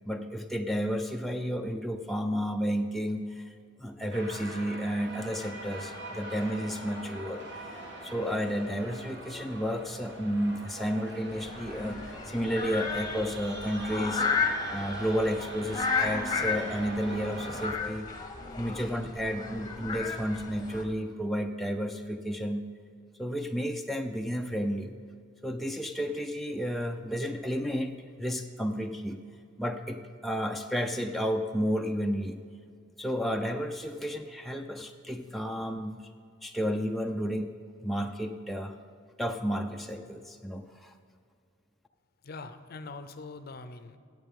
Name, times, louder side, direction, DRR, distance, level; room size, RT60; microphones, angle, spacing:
voice 1, 0.1-7.4 8.0-14.3 14.7-18.1 18.6-22.7 23.2-25.0 25.4-29.2 29.6-32.4 33.0-36.0 36.4-37.5 37.8-38.8 39.2-40.9, equal, ahead, 3 dB, 0.4 m, -32 dB
sound 1, 4.1-17.7, right 1 dB, 60° right, 2.2 m, -42 dB
sound 2, 11.3-20.8, left 4 dB, 20° left, 0.9 m, -33 dB
voice 2, 42.2-44.0, left 3 dB, 50° left, 10 dB, 0.5 m, -43 dB
16.0 x 8.1 x 3.6 m, 2.2 s
head